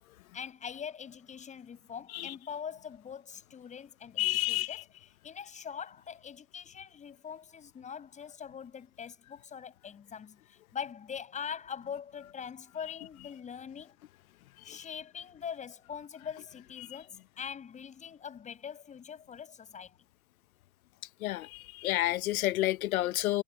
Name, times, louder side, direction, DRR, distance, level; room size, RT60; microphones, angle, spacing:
voice 1, 0.3-14.0 14.6-19.9, left 7 dB, 15° left, 7.0 m, -43 dB
voice 2, 4.2-4.7 14.7-14.8 21.2-23.4, left 15 dB, 65° left, 1.0 m, -30 dB
hypercardioid pair, 150°, 45 cm